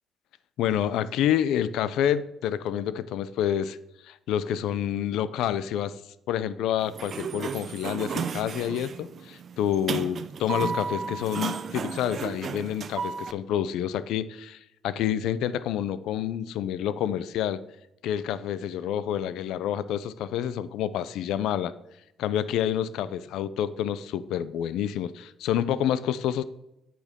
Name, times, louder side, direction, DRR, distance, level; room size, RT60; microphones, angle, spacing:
voice 1, 0.6-3.8 4.0-6.0 6.3-17.6 18.0-21.7 22.2-26.4, left 10 dB, 90° left, 16 dB, 0.5 m, -28 dB
Sliding door, 6.8-13.3, right 6 dB, 55° right, 0.6 m, -33 dB
8.7 x 8.2 x 3.6 m, 0.88 s
cardioid pair, 90°, 0 cm